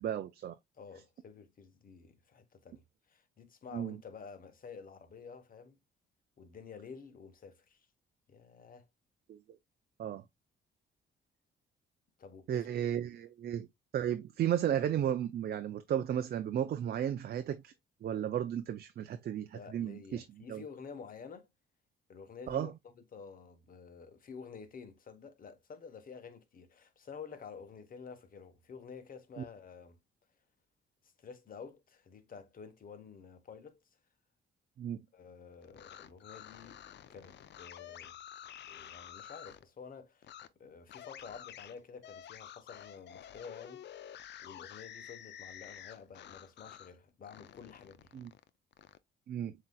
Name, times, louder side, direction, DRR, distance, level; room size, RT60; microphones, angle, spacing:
voice 1, 0.0-0.6 3.7-4.0 9.3-9.4 10.0-10.2 12.5-13.7 13.9-17.7 18.0-20.2 20.5-20.6 22.5-22.7 29.4-29.5 34.8-35.0 48.1-48.3 49.3-49.5, right 10 dB, 50° right, 0.5 m, -34 dB
voice 2, 0.7-5.8 6.4-7.9 8.3-8.9 12.2-12.7 19.5-21.5 22.1-30.0 31.0-33.8 35.1-36.8 37.1-38.2 38.7-40.3 40.6-43.9 44.4-48.2, left 6 dB, 45° left, 1.0 m, -50 dB
sound 1, 35.6-39.6 40.2-40.5 40.9-46.9 47.2-49.0, left 10 dB, 60° left, 0.5 m, -50 dB
7.3 x 2.9 x 2.2 m
cardioid pair, 90°, 20 cm